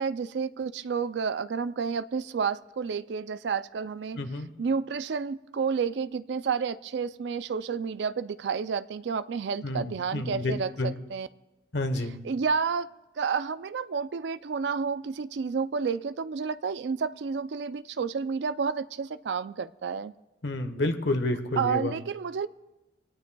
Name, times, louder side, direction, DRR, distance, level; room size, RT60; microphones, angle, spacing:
voice 1, 0.0-4.3 4.6-11.3 12.2-12.9 13.2-20.1 21.6-22.5, right 5 dB, 80° right, 0.4 m, -30 dB
voice 2, 4.2-4.5 9.6-10.9 11.7-12.2 20.4-21.9, left 2 dB, 85° left, 1.1 m, -29 dB
24.0 x 18.0 x 2.3 m
head